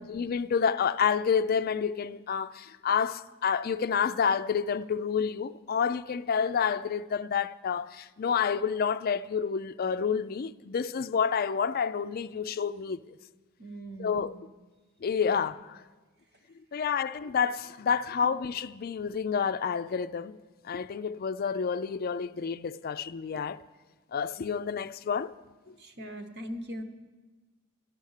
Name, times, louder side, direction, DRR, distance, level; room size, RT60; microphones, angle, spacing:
voice 1, 0.0-13.0 14.0-14.4 15.0-15.8 16.7-20.4 20.6-23.6 24.1-25.3 25.7-25.8, left 6 dB, 45° left, 0.4 m, -29 dB
voice 2, 13.6-14.3 15.2-15.4 18.2-18.3 25.8-26.8, equal, 50° right, 1.1 m, -40 dB
12.5 x 11.5 x 6.5 m
head